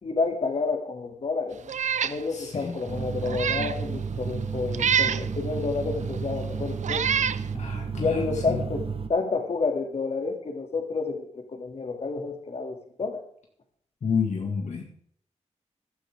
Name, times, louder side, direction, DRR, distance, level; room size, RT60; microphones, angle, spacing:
voice 1, 0.0-1.7 2.0-7.0 8.0-8.8 9.1-13.2, left 4 dB, 55° left, 4 dB, 2.6 m, -29 dB
Meow, 1.7-2.2 2.6-2.7 3.2-3.8 4.7-5.3 6.1-6.2 6.8-7.4, right 8 dB, 90° right, 0.6 m, -26 dB
voice 2, 2.3-2.8 7.5-8.6 14.0-14.8, left 6 dB, 75° left, 1 dB, 2.2 m, -30 dB
sound 1, 2.9-9.1, right 5 dB, 50° right, 1.4 m, -32 dB
15.0 x 11.5 x 3.7 m, 0.63 s
wide cardioid pair, 115°, 12 cm